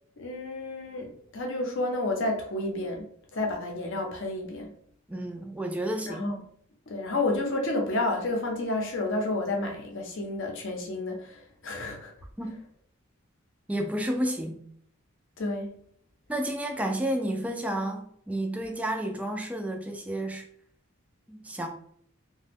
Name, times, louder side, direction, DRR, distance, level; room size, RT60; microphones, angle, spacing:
voice 1, 0.2-3.1 3.3-4.7 6.1-6.4 6.9-12.1 15.4-15.8, left 2 dB, 60° left, 0.6 m, -30 dB
voice 2, 5.1-6.2 12.4-12.5 13.7-14.6 16.3-20.4 21.3-21.7, right 1 dB, 5° right, 0.3 m, -31 dB
2.9 x 2.2 x 3.4 m
head